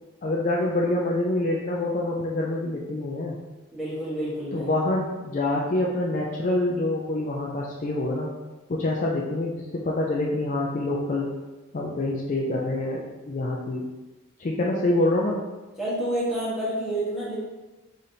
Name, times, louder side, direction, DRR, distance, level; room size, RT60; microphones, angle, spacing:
voice 1, 0.2-3.4 4.5-8.3 8.7-11.3 11.7-13.9 14.4-15.4, left 2 dB, 35° left, -2 dB, 0.4 m, -26 dB
voice 2, 3.7-4.7 15.8-17.3, right 1 dB, ahead, -9 dB, 1.1 m, -28 dB
4.9 x 2.6 x 2.8 m, 1.1 s
head